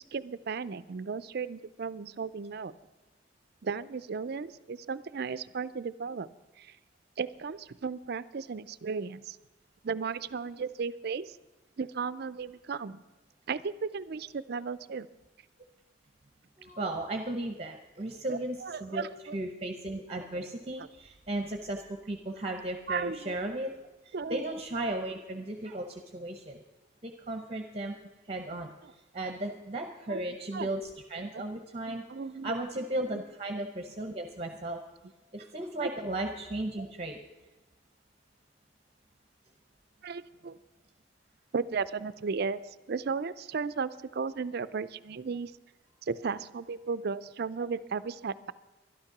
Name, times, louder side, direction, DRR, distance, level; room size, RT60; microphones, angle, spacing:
voice 1, 0.0-2.7 3.6-6.3 6.6-6.7 7.2-9.4 9.8-11.4 11.8-13.0 13.5-15.1 18.3-19.4 22.9-23.4 24.1-24.6 28.8-28.9 29.2-29.3 30.1-30.2 30.5-30.7 31.3-31.5 31.9-32.6 35.8-35.9 40.0-40.6 41.5-45.5 46.0-48.5, right 5 dB, 55° right, 16 dB, 0.4 m, -35 dB
voice 2, 16.6-19.1 19.3-23.7 24.0-26.6 27.0-28.0 28.3-28.7 29.1-32.0 32.4-34.8 35.3-37.2, right 1 dB, 30° right, 5 dB, 0.8 m, -35 dB
12.0 x 12.0 x 5.9 m, 1.1 s
head